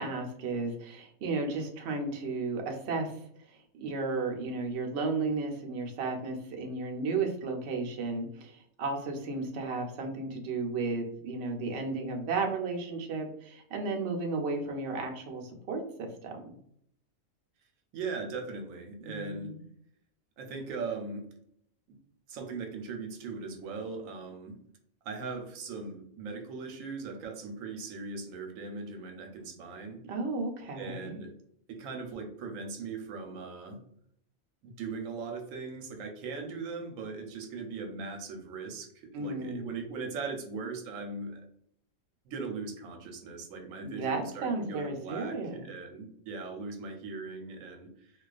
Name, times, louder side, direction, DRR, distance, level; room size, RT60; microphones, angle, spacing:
voice 1, 0.0-3.2 3.5-16.5 19.0-19.6 30.1-31.2 39.1-39.7 43.8-45.7, right 3 dB, 65° right, 2 dB, 0.8 m, -34 dB
voice 2, 17.9-19.5 20.4-21.2 21.9-22.0 22.3-24.6 25.0-30.0 30.8-31.3 31.7-33.8 34.6-41.4 42.2-48.1, right 4 dB, 85° right, 3 dB, 1.0 m, -39 dB
2.3 x 2.3 x 2.3 m, 0.68 s
omnidirectional pair, 1.3 m